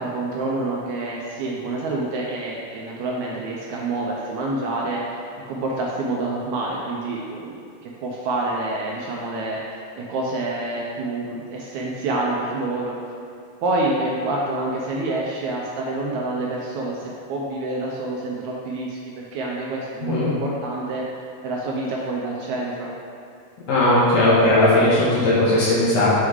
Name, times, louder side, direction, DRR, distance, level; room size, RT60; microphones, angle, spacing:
voice 1, 0.0-5.2 5.5-7.5 7.8-9.6 10.0-13.1 13.6-21.0 21.4-22.9, right 2 dB, 75° right, -3 dB, 1.8 m, -27 dB
voice 2, 23.7-26.2, left 1 dB, 65° left, -8 dB, 1.9 m, -17 dB
6.2 x 4.4 x 3.6 m, 2.4 s
omnidirectional pair, 3.7 m